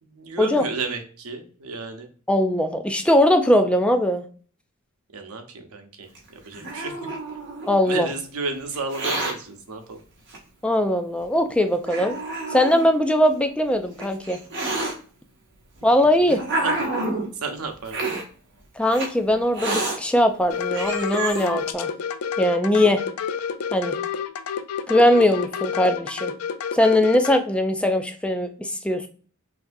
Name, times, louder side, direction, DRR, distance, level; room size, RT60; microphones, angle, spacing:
voice 1, 0.0-2.1 5.1-7.0 7.8-10.0 16.6-16.8 17.3-18.1, right 4 dB, 90° right, 6 dB, 0.8 m, -32 dB
voice 2, 2.3-4.3 7.7-8.1 10.6-12.2 12.5-14.4 15.8-16.4 18.8-21.9 22.4-23.0 23.7-24.0 24.9-26.3 26.7-29.1, left 1 dB, 5° left, 7 dB, 0.4 m, -20 dB
Hiss, 6.2-7.8 8.7-9.3 10.3-10.4 11.2-11.3 11.9-12.9 13.7-14.9 15.8-17.3 17.9-18.2 18.9-19.1 19.5-20.0 20.5-20.6 20.7-21.5, right 2 dB, 55° right, 1.1 m, -28 dB
sound 1, 20.5-27.4, left 7 dB, 85° left, 0.4 m, -29 dB
5.8 x 2.7 x 2.6 m, 0.42 s
head